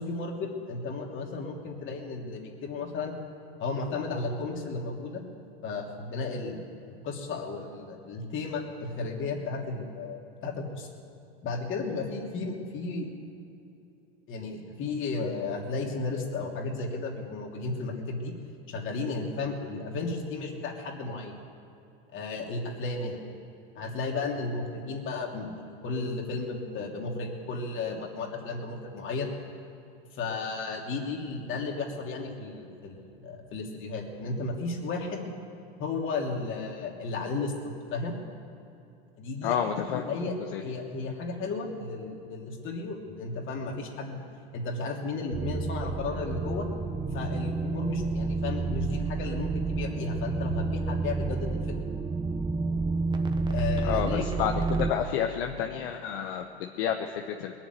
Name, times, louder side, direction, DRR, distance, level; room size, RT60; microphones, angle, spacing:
voice 1, 0.0-3.1 3.6-5.2 5.6-10.9 11.4-13.1 14.3-18.3 18.7-21.3 22.1-23.2 23.7-29.3 30.1-35.3 35.8-38.1 39.2-40.3 40.6-44.2 44.5-46.7 47.1-51.8 53.5-54.2, left 3 dB, 40° left, 0 dB, 3.0 m, -34 dB
voice 2, 39.4-40.2 40.5-40.6 53.8-57.5, left 9 dB, 60° left, 4 dB, 1.1 m, -30 dB
sound 1, 45.3-54.9, right 4 dB, 15° right, 1.3 m, -30 dB
21.0 x 7.3 x 9.3 m, 2.7 s
hypercardioid pair, 95°, 32 cm